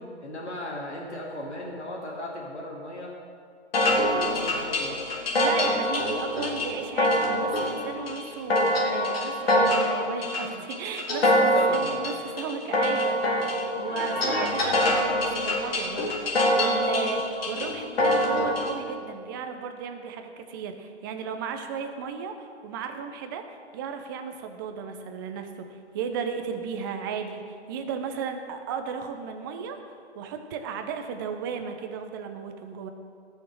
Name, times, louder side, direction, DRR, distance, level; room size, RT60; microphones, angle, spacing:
voice 1, 0.0-3.1 3.8-5.0 11.2-11.9, left 1 dB, 85° left, -3 dB, 2.5 m, -37 dB
sound 1, 3.7-18.7, left 1 dB, 60° left, 2.6 m, -25 dB
voice 2, 5.4-32.9, right 6 dB, 20° right, 6 dB, 0.7 m, -35 dB
14.5 x 6.5 x 6.4 m, 2.3 s
hypercardioid pair, 140°, 33 cm